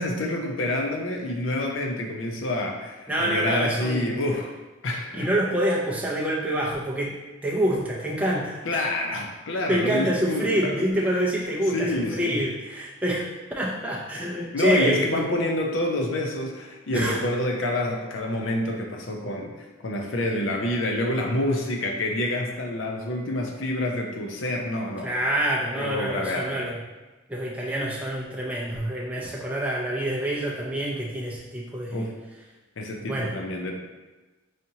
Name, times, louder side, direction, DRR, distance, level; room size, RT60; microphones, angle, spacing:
voice 1, 0.0-4.5 4.8-5.3 8.6-10.8 11.1-11.2 11.7-12.4 14.5-25.1 25.8-26.7 31.9-32.1 32.8-33.7, left 1 dB, 75° left, 1 dB, 0.6 m, -28 dB
voice 2, 3.1-4.2 5.1-7.2 7.4-8.6 9.7-13.2 13.6-15.2 16.9-17.2 25.0-26.8 27.3-32.1 33.0-33.3, right 1 dB, 5° right, -5 dB, 0.4 m, -26 dB
4.9 x 2.8 x 2.7 m, 1.2 s
head